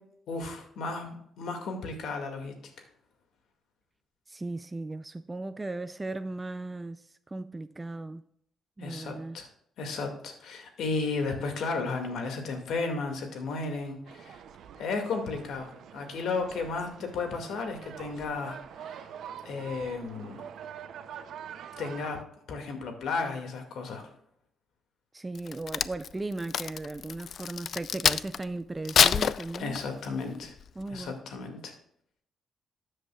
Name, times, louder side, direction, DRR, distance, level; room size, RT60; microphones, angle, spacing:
voice 1, 0.3-2.8 8.8-9.5 9.8-14.4 14.8-19.0 19.4-20.4 21.8-22.2 22.5-24.1 29.6-30.5 30.9-31.7, left 4 dB, 75° left, 2.1 m, -34 dB
voice 2, 4.3-8.2 8.8-9.4 25.1-29.8 30.8-31.1, right 2 dB, 20° right, 0.4 m, -37 dB
sound 1, 14.1-22.2, right 8 dB, 70° right, 0.6 m, -45 dB
Crack, 25.3-28.4 28.8-30.1 30.6-30.8, left 8 dB, 55° left, 0.3 m, -26 dB
13.5 x 7.8 x 2.4 m
cardioid pair, 90°, 0 cm